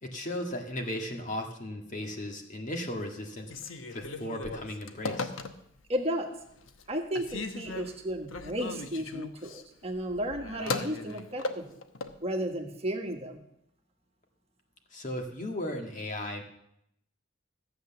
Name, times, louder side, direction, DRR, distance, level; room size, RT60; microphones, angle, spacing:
voice 1, 0.0-3.5 3.9-5.3 14.9-16.4, left 1 dB, 40° left, 3 dB, 1.7 m, -36 dB
Telephone, 3.4-5.9 6.4-6.9 7.1-12.2, left 3 dB, 85° left, 1.0 m, -37 dB
voice 2, 5.9-6.3 6.9-11.8 12.2-13.4, equal, 30° right, 3 dB, 1.5 m, -33 dB
14.5 x 8.0 x 7.0 m, 0.77 s
head